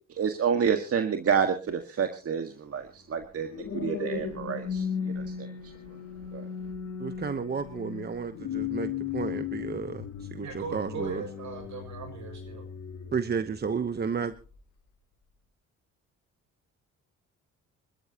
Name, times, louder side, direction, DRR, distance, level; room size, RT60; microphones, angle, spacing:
voice 1, 0.2-4.8 5.2-5.3 6.3-6.4, right 7 dB, 50° right, 6 dB, 1.8 m, -28 dB
sound 1, 3.2-13.7 14.3-14.6, left 7 dB, 80° left, 3.1 m, -36 dB
voice 2, 7.0-11.2 13.1-14.3, right 6 dB, 35° right, 11 dB, 1.0 m, -32 dB
voice 3, 10.4-12.6, right 5 dB, 70° right, 5 dB, 6.5 m, -39 dB
26.0 x 13.0 x 2.9 m, 0.33 s
cardioid pair, 90°, 30 cm